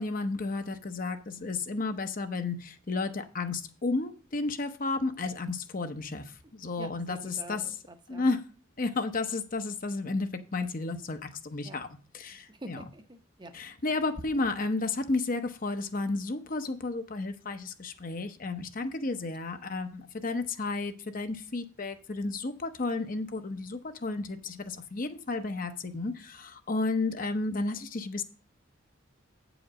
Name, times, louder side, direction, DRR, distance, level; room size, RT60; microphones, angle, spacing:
voice 1, 0.0-7.6 8.1-8.4 8.8-11.9 12.1-12.8 13.5-28.2, left 3 dB, 40° left, 8 dB, 0.8 m, -32 dB
voice 2, 6.8-8.2 11.6-11.8 12.5-13.5 19.0-19.1, right 1 dB, 20° right, 7 dB, 0.7 m, -46 dB
8.6 x 5.0 x 6.2 m, 0.38 s
head